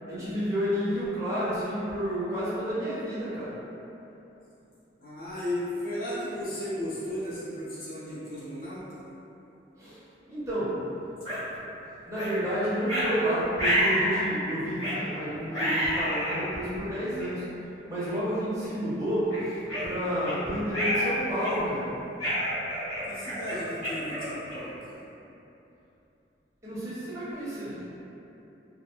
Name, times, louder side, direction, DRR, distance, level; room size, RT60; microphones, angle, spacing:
voice 1, 0.1-3.5 9.8-10.0 10.3-10.7 11.5-11.6 12.1-17.4 17.9-19.6 19.8-21.9 26.6-27.8, equal, 15° right, -11 dB, 0.5 m, -30 dB
voice 2, 5.0-9.0 20.4-20.7 23.1-25.0, left 1 dB, 50° left, -10 dB, 0.6 m, -35 dB
erin gremlin sounds, 11.3-11.4 12.2-12.3 12.9-13.1 13.6-14.2 14.8-15.0 15.5-16.4 17.2-17.3 18.0-18.2 18.6-18.8 19.3-20.4 20.7-21.1 21.4-21.8 22.2-24.8, equal, 20° left, 1.1 m, -29 dB
2.4 x 2.1 x 2.9 m, 2.9 s
head